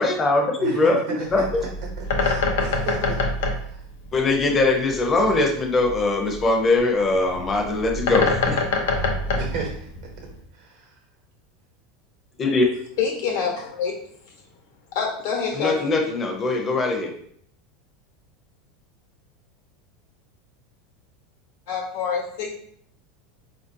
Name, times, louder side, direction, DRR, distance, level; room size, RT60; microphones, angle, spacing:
voice 1, 0.0-1.5 4.1-8.7 12.4-12.7 15.6-17.1, left 2 dB, 25° left, 1 dB, 0.7 m, -21 dB
voice 2, 0.6-1.7 2.0-3.2 3.7-3.8 9.3-9.9 10.5-10.8, right 4 dB, 65° right, 0 dB, 0.9 m, -34 dB
Bird, 1.3-10.4, left 3 dB, 85° left, 0.6 m, -26 dB
voice 3, 13.0-13.9 14.9-15.9 21.7-22.5, left 6 dB, 70° left, 0 dB, 1.1 m, -26 dB
4.0 x 2.6 x 2.6 m, 0.64 s
supercardioid pair, 145°, 0 cm